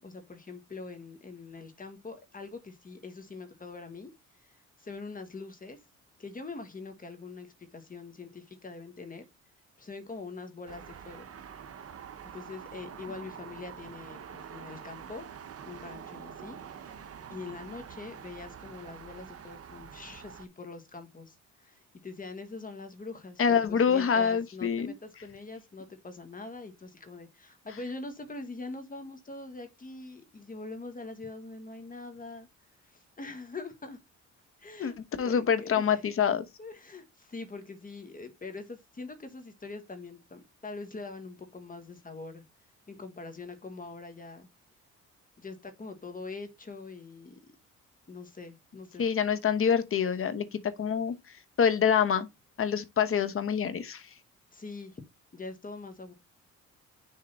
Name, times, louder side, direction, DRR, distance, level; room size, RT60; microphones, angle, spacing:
voice 1, 0.0-4.1 4.4-5.8 6.2-9.3 9.8-11.2 12.2-15.2 15.6-16.8 17.3-32.5 32.8-34.0 34.6-35.0 35.2-36.0 36.6-42.4 42.9-44.5 45.4-47.5 48.1-49.0 54.5-55.0 55.3-56.1, left 3 dB, 30° left, 1.5 m, -43 dB
sound 1, 10.7-20.5, right 8 dB, 50° right, 0.9 m, -46 dB
voice 2, 23.4-24.9 34.8-34.9 35.2-36.4 49.0-51.2 51.6-52.3 52.6-54.1, left 7 dB, 45° left, 1.1 m, -26 dB
6.7 x 3.8 x 4.2 m
cardioid pair, 90°, 30 cm